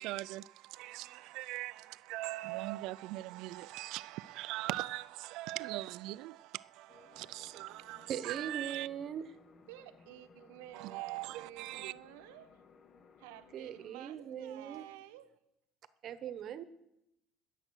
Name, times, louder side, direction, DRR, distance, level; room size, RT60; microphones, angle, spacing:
voice 1, 0.0-8.9 10.7-11.9, right 18 dB, 70° right, 0.4 m, -41 dB
sound 1, 6.9-13.9, left 5 dB, 40° left, 1.2 m, -61 dB
voice 2, 8.1-9.3 13.5-14.8 16.0-16.6, right 9 dB, 50° right, 1.1 m, -40 dB
voice 3, 9.7-12.6 13.2-15.4, right 14 dB, 90° right, 1.0 m, -51 dB
20.5 x 7.8 x 6.4 m
supercardioid pair, 105°, 0 cm